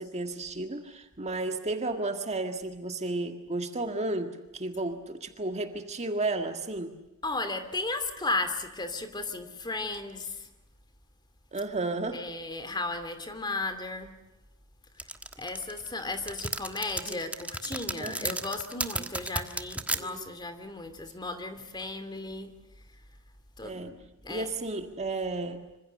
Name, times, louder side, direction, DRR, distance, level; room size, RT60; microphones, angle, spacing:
voice 1, 0.0-6.9 11.5-12.2 17.1-17.2 18.0-18.4 20.0-20.3 23.6-24.0 24.3-25.8, right 2 dB, 30° right, 6 dB, 1.8 m, -33 dB
voice 2, 7.2-10.5 12.1-14.1 15.0-15.1 15.4-22.5 23.6-23.9 24.2-24.5, left 2 dB, 20° left, 9 dB, 2.8 m, -35 dB
sound 1, 15.0-20.0, right 2 dB, 5° right, 1.4 m, -33 dB
26.5 x 26.0 x 6.7 m, 1.0 s
head